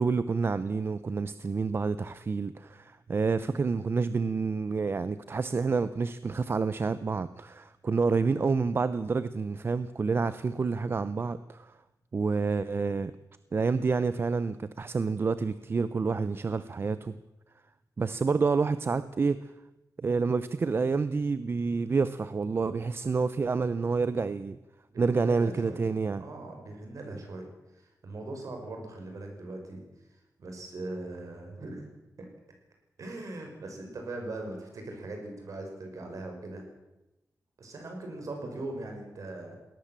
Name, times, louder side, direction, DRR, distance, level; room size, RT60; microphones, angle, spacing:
voice 1, 0.0-11.7 12.1-13.1 13.5-17.2 18.0-19.4 20.0-24.6 25.0-26.2, right 4 dB, 35° right, 0.6 m, -28 dB
voice 2, 24.9-25.8 26.2-27.5 27.7-29.8 30.4-31.9 32.2-32.3 33.0-36.6 37.6-39.6, right 2 dB, 55° right, 6.1 m, -40 dB
21.0 x 18.0 x 7.4 m
wide cardioid pair, 165°, 7 cm